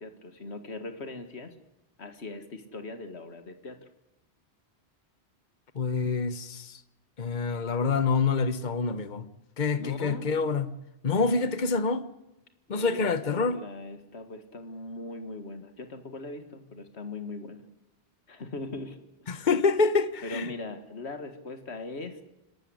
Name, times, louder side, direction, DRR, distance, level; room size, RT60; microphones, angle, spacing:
voice 1, 0.0-1.6 2.0-3.9 9.8-10.3 12.7-17.6 18.3-19.0 19.3-19.5 20.2-22.2, left 2 dB, 80° left, 2.1 m, -40 dB
voice 2, 5.7-6.8 7.2-9.3 9.6-10.7 11.0-12.0 12.7-13.6 19.3-20.5, left 4 dB, 45° left, 1.2 m, -26 dB
27.5 x 12.5 x 9.8 m
omnidirectional pair, 1.1 m